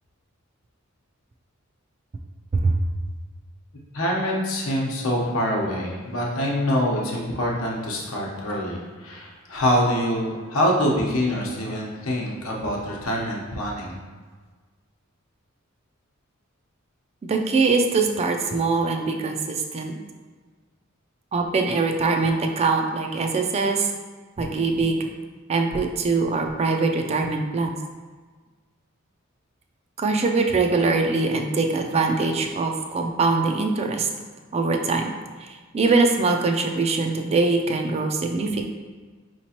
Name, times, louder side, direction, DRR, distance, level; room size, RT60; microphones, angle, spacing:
voice 1, 3.9-14.0, equal, 85° left, -2 dB, 0.9 m, -25 dB
voice 2, 17.2-20.0 21.3-23.9 24.4-25.0 25.5-27.8 30.0-34.1 34.5-38.6, right 3 dB, 30° right, 4 dB, 0.3 m, -23 dB
4.9 x 3.0 x 2.8 m, 1.4 s
head